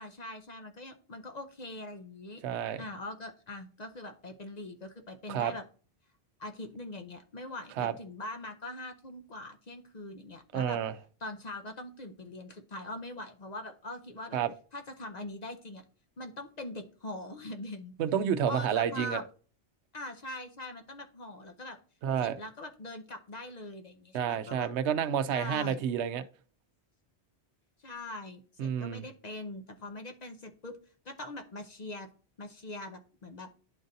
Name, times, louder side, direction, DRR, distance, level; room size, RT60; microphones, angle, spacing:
voice 1, 0.0-2.4 2.8-5.6 6.4-10.8 11.2-14.4 14.7-15.8 16.2-17.9 18.5-19.2 19.9-21.8 22.2-24.7 25.3-25.8 27.8-30.8 31.0-32.1 32.4-33.6, left 2 dB, 45° left, 0.6 m, -42 dB
voice 2, 2.4-2.8 5.3-5.5 7.8-7.9 10.5-10.9 14.3-14.5 18.0-19.2 22.0-22.4 24.1-26.2 28.6-29.0, right 8 dB, 80° right, 0.9 m, -29 dB
11.0 x 3.9 x 2.6 m
omnidirectional pair, 1.1 m